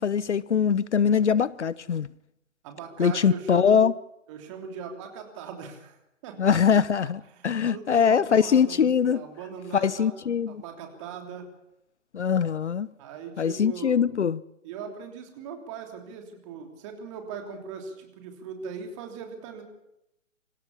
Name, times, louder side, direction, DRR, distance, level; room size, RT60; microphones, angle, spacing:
voice 1, 0.0-2.1 3.0-3.9 6.4-9.2 9.7-10.6 12.1-12.9 13.4-14.4, left 7 dB, 65° left, 0.7 m, -22 dB
voice 2, 2.6-3.9 4.3-6.8 7.3-10.2 10.5-11.5 13.0-14.0 14.6-19.6, right 6 dB, 25° right, 3.3 m, -39 dB
25.5 x 15.0 x 7.1 m
figure-of-eight pair, 145°, 39 cm